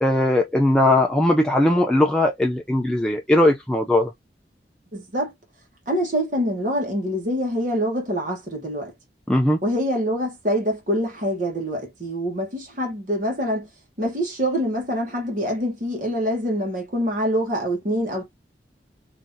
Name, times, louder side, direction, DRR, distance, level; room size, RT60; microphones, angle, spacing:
voice 1, 0.0-4.1 9.3-9.6, left 1 dB, 5° left, 0.4 m, -19 dB
voice 2, 4.9-5.3 5.9-8.9 9.6-13.7 14.0-18.3, equal, 45° right, 1.1 m, -25 dB
3.6 x 2.7 x 2.6 m
head